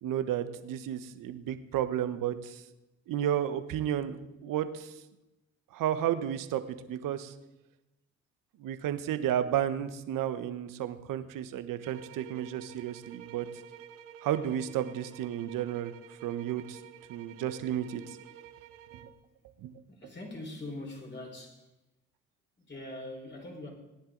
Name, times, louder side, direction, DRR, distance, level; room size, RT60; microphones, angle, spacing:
voice 1, 0.0-2.6 3.1-5.0 5.7-7.3 8.6-13.5 14.2-15.9 16.2-16.8 17.1-18.2 19.0-19.1 19.6-19.7, right 10 dB, 65° right, 11 dB, 1.2 m, -32 dB
sound 1, 11.8-19.2, right 10 dB, 85° right, 0.9 m, -50 dB
voice 2, 19.9-21.7 22.6-23.7, left 2 dB, 30° left, 1 dB, 4.9 m, -42 dB
19.0 x 10.5 x 3.9 m, 0.97 s
hypercardioid pair, 55°, 35 cm